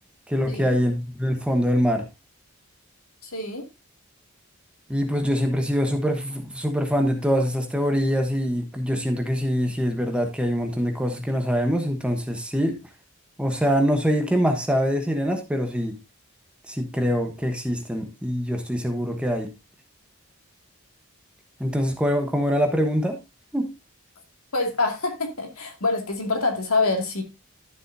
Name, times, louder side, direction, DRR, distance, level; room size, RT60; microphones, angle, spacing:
voice 1, 0.3-2.1 4.9-12.8 13.4-16.0 16.7-19.5 21.6-23.2 23.5-23.7, equal, 5° right, 1.1 m, -24 dB
voice 2, 3.2-3.6 24.5-27.2, left 3 dB, 75° left, 2.4 m, -25 dB
12.0 x 7.3 x 2.7 m
head